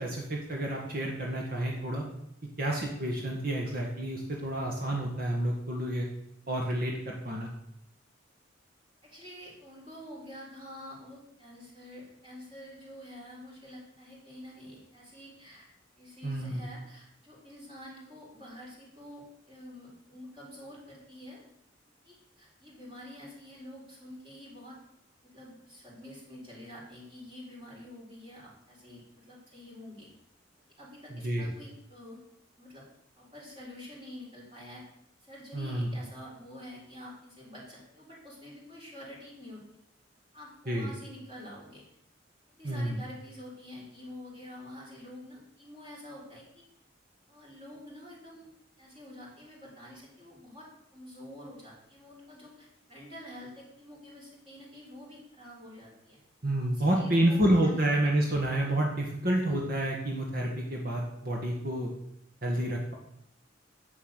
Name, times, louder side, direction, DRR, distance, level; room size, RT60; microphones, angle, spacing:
voice 1, 0.0-2.0 2.6-6.1 6.5-7.5 16.2-16.6 31.1-31.5 35.5-35.9 40.7-40.9 42.6-43.0 56.4-61.9 62.4-62.9, right 1 dB, 50° right, -1 dB, 1.9 m, -29 dB
voice 2, 9.0-15.7 16.0-21.4 22.0-24.8 25.2-30.1 30.8-32.2 32.6-32.8 33.2-34.9 35.2-39.6 40.3-41.8 42.6-46.6 47.3-48.5 48.8-56.2 56.7-57.8, left 1 dB, 30° right, -5 dB, 4.0 m, -48 dB
11.0 x 7.3 x 6.5 m, 0.77 s
head